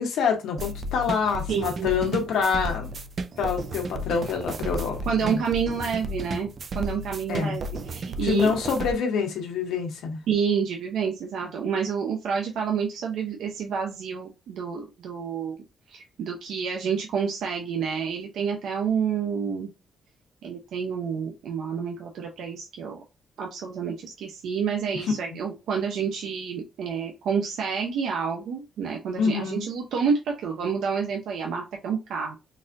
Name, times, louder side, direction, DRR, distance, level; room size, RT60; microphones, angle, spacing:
voice 1, 0.0-2.9 3.4-5.4 7.3-7.6 8.2-10.2 24.9-25.4 29.2-29.6, left 6 dB, 85° left, 1.0 m, -26 dB
sound 1, 0.6-8.9, right 1 dB, 40° right, 0.4 m, -33 dB
voice 2, 1.5-2.1 5.1-8.5 10.3-15.6 15.9-19.7 20.4-23.0 23.4-32.4, right 6 dB, 75° right, 0.6 m, -29 dB
3.9 x 2.5 x 2.6 m
cardioid pair, 155°, 0 cm